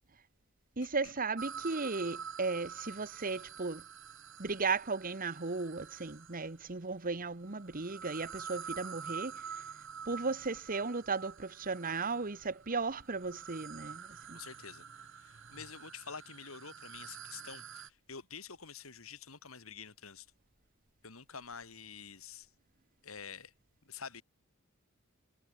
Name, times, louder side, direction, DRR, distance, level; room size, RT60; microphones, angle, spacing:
voice 1, 0.8-3.8 4.4-9.4 10.1-14.4, right 4 dB, 45° right, 1.4 m, -36 dB
sound 1, 1.4-6.6 7.4-17.9, right 7 dB, 65° right, 2.9 m, -47 dB
voice 2, 14.3-20.3 21.0-22.5 23.0-23.5 23.8-24.2, left 6 dB, 85° left, 3.0 m, -48 dB
head